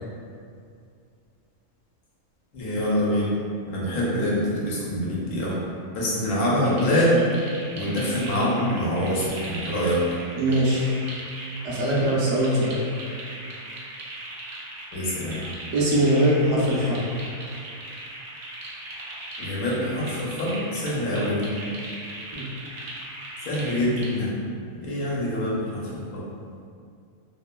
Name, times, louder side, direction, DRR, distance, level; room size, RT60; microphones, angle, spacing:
voice 1, 2.5-3.4 3.7-5.6 5.9-7.3 7.7-10.0 14.9-15.5 19.4-21.6 23.5-24.3 24.8-26.3, equal, 85° left, -6 dB, 1.1 m, -25 dB
sound 1, 6.6-24.1, right 1 dB, 85° right, 0.4 m, -38 dB
voice 2, 10.4-11.0 11.6-12.8 15.7-17.0 22.3-22.4, right 1 dB, 70° right, -6 dB, 0.9 m, -21 dB
3.0 x 2.1 x 2.2 m, 2.3 s
omnidirectional pair, 1.5 m